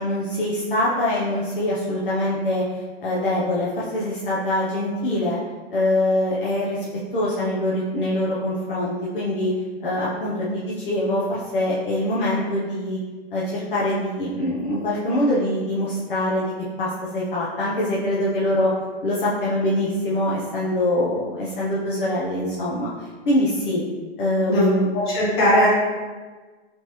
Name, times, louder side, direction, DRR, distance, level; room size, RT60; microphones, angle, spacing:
voice 1, 0.0-2.6 3.0-5.4 5.7-6.8 7.1-9.5 9.8-13.0 13.3-16.5 16.8-18.7 19.0-23.8 24.2-24.9, left 1 dB, 50° left, -7 dB, 0.7 m, -24 dB
voice 2, 24.9-25.7, equal, 25° left, -8 dB, 1.1 m, -18 dB
3.4 x 3.0 x 3.0 m, 1.3 s
hypercardioid pair, 175°, 33 cm